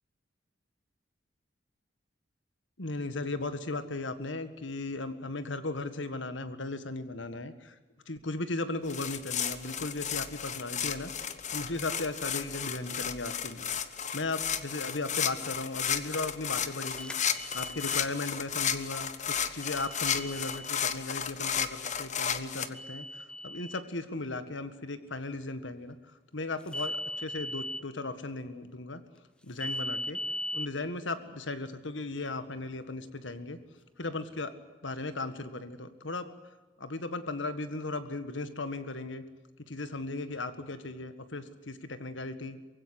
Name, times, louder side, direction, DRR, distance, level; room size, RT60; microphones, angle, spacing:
voice 1, 2.8-7.7 8.1-11.1 11.5-13.7 14.1-17.1 17.5-25.9 26.3-29.0 29.4-30.2 30.5-33.6 34.0-34.5 34.8-36.3 36.8-39.2 39.7-42.6, left 2 dB, 75° left, 11 dB, 1.8 m, -36 dB
sound 1, 8.9-22.7, left 8 dB, 40° left, 1.2 m, -33 dB
sound 2, 16.9-18.1 19.6-20.7 22.7-23.8 26.7-27.8 29.6-30.7, left 1 dB, 5° left, 0.6 m, -38 dB
23.5 x 16.5 x 10.0 m, 1.2 s
head